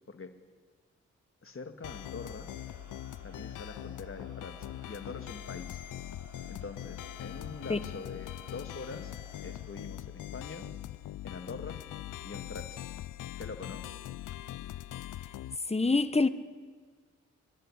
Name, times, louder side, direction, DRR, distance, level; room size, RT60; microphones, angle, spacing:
voice 1, 1.4-2.5 3.2-5.8 6.5-9.1 9.4-10.7 11.2-11.8 12.2-12.9 13.4-13.9, left 4 dB, 45° left, 8 dB, 2.2 m, -44 dB
sound 1, 1.8-15.6, left 13 dB, 75° left, 0.6 m, -42 dB
Crowd, 1.8-9.8, right 3 dB, 65° right, 6.1 m, -56 dB
voice 2, 15.7-16.3, left 3 dB, 20° left, 13 dB, 1.3 m, -25 dB
29.0 x 11.5 x 9.9 m, 1.5 s
supercardioid pair, 45°, 31 cm